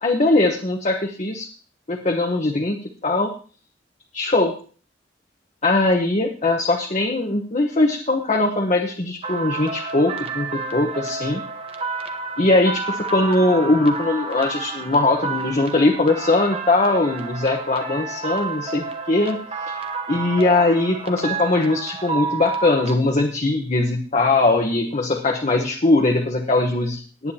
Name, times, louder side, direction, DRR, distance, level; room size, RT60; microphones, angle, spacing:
voice 1, 0.0-1.5 1.9-2.8 3.0-3.3 4.1-4.5 5.6-11.4 12.4-19.4 20.1-27.3, left 2 dB, 40° left, 2 dB, 1.1 m, -20 dB
sound 1, 9.2-22.9, right 4 dB, 35° right, 1.0 m, -30 dB
18.0 x 9.4 x 2.9 m, 0.40 s
head